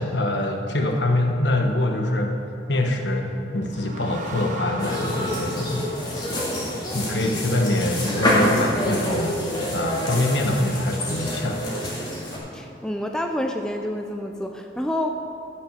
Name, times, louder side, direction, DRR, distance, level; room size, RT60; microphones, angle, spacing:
voice 1, 0.0-2.4 2.7-5.9 6.2-6.3 6.9-9.4 9.7-11.6, left 1 dB, 80° left, 3 dB, 1.2 m, -24 dB
sound 1, 3.4-7.0, right 3 dB, 45° right, 1.0 m, -38 dB
sound 2, 4.8-12.4, left 1 dB, 25° left, 2.2 m, -27 dB
voice 2, 12.5-15.1, left 1 dB, 5° left, 3 dB, 0.4 m, -28 dB
12.5 x 5.9 x 6.6 m, 2.6 s
head